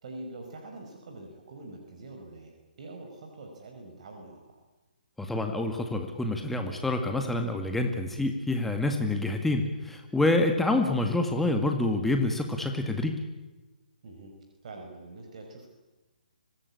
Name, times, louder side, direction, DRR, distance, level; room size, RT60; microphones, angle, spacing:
voice 1, 0.0-4.6 10.7-10.8 14.0-14.4 14.6-15.7, right 2 dB, 50° right, 3 dB, 5.0 m, -45 dB
voice 2, 5.2-13.1, left 2 dB, 5° left, 4 dB, 1.9 m, -27 dB
25.5 x 19.0 x 8.6 m, 1.2 s
figure-of-eight pair, 135°, 5 cm